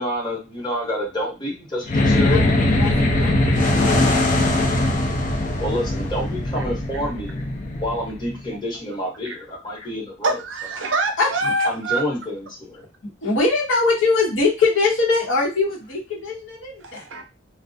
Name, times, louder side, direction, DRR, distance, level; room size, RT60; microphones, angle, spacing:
voice 1, 0.0-2.4 5.6-7.4 7.8-10.4 11.6-12.8, left 1 dB, 25° left, -4 dB, 0.9 m, -28 dB
sound 1, 1.8-8.5, left 1 dB, 40° left, 0.5 m, -21 dB
voice 2, 2.3-4.2 11.2-11.3 13.2-17.0, left 3 dB, 70° left, -4 dB, 0.8 m, -22 dB
voice 3, 10.2-12.0 16.8-17.2, right 2 dB, 65° right, 5 dB, 0.5 m, -25 dB
2.3 x 2.0 x 2.6 m, 0.27 s
head